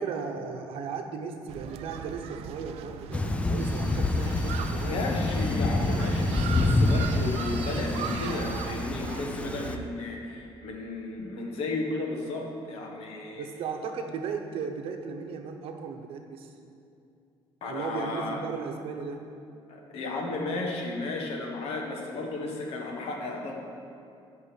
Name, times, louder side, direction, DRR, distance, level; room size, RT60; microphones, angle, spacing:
voice 1, 0.0-5.1 13.4-16.6 17.6-19.2, right 5 dB, 65° right, 4 dB, 0.9 m, -36 dB
sound 1, 1.5-9.9, right 8 dB, 85° right, 0.4 m, -38 dB
Thunder / Rain, 3.1-9.8, left 2 dB, 10° left, 0.4 m, -27 dB
sound 2, 3.6-8.7, right 1 dB, 35° right, 2.1 m, -45 dB
voice 2, 4.8-13.5 17.6-18.4 19.7-23.5, left 2 dB, 75° left, 0 dB, 1.5 m, -34 dB
8.3 x 5.5 x 7.7 m, 2.6 s
cardioid pair, 150°, 10 cm